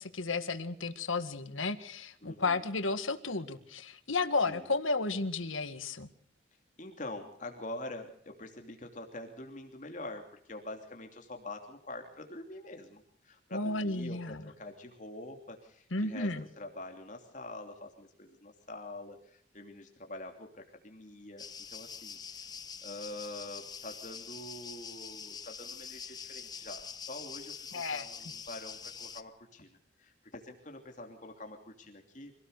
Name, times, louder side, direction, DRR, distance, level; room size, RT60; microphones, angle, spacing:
voice 1, 0.0-6.1 13.5-14.4 15.9-16.4 27.7-28.1, left 3 dB, 85° left, 9 dB, 1.9 m, -33 dB
voice 2, 2.2-2.7 4.4-4.7 6.8-22.5 22.8-32.3, left 2 dB, 40° left, 3 dB, 3.0 m, -45 dB
sound 1, 21.4-29.2, left 6 dB, 20° left, 1.1 m, -45 dB
26.0 x 18.0 x 6.7 m, 0.64 s
head